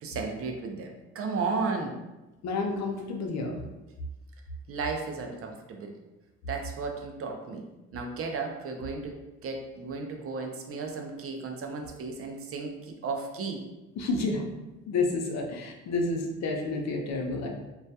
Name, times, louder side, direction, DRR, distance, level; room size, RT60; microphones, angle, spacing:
voice 1, 0.0-2.0 4.7-5.9 6.5-7.7 7.9-13.6, right 4 dB, 45° right, 2 dB, 0.4 m, -34 dB
voice 2, 2.4-3.6 14.0-14.4 14.9-17.5, left 3 dB, 60° left, 1 dB, 0.5 m, -30 dB
2.2 x 2.1 x 2.7 m, 1.1 s
supercardioid pair, 80°, 31 cm